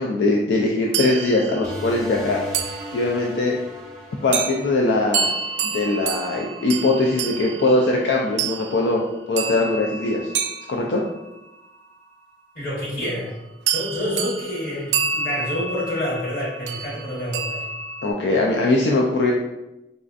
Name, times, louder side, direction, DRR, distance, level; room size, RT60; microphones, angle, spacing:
voice 1, 0.0-2.4 2.9-3.6 4.2-5.3 5.6-9.0 9.3-10.3 10.7-11.0 18.0-19.3, left 2 dB, 80° left, -1 dB, 0.3 m, -21 dB
sound 1, 0.9-3.4 4.3-4.6 5.1-11.5 13.0-13.3 13.7-18.1, right 6 dB, 90° right, 0.3 m, -29 dB
sound 2, 1.6-6.8, left 1 dB, 5° left, 0.5 m, -38 dB
voice 2, 12.5-13.3 13.7-17.7, left 1 dB, 50° left, -6 dB, 1.3 m, -28 dB
4.1 x 2.4 x 2.5 m, 0.96 s
head